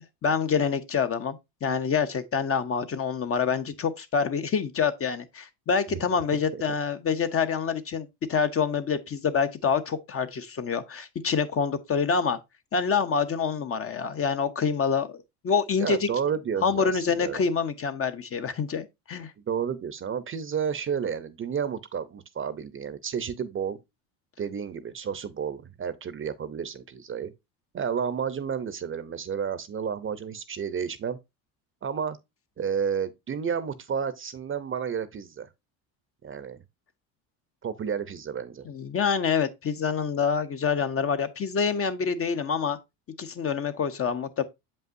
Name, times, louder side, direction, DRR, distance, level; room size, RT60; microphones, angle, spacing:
voice 1, 0.2-12.4 12.7-16.1 16.6-19.3 38.7-42.8 43.2-44.4, left 6 dB, 30° left, 0.7 m, -26 dB
voice 2, 15.8-17.4 19.4-23.8 24.4-27.3 27.7-31.2 31.8-32.2 32.6-35.5 36.2-36.6 37.6-38.7, right 7 dB, 30° right, 0.7 m, -31 dB
7.1 x 5.5 x 2.6 m
supercardioid pair, 90°, 43 cm